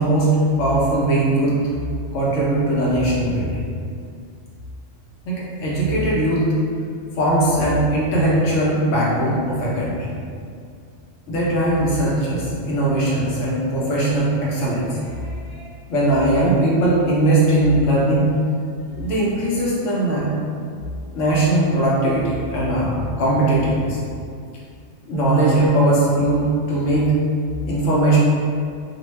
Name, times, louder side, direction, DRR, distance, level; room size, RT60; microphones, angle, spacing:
voice 1, 0.0-1.6 2.1-3.7 5.3-6.5 7.2-10.1 11.3-18.3 18.9-20.3 21.1-24.0 25.1-27.1 27.6-28.2, right 1 dB, 90° left, -6 dB, 1.1 m, -19 dB
2.7 x 2.0 x 3.0 m, 2.3 s
omnidirectional pair, 1.3 m